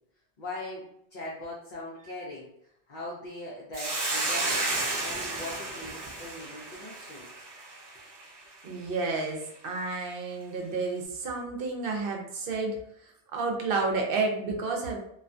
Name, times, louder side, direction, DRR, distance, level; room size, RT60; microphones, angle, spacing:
voice 1, 0.4-7.3 7.9-8.0, left 1 dB, 50° left, -6 dB, 0.7 m, -41 dB
Hiss, 3.7-8.2, right 2 dB, 40° right, 0.3 m, -32 dB
voice 2, 8.6-12.8 13.0-15.0, right 3 dB, 65° right, 1 dB, 0.7 m, -31 dB
2.3 x 2.2 x 2.5 m, 0.73 s
omnidirectional pair, 1.1 m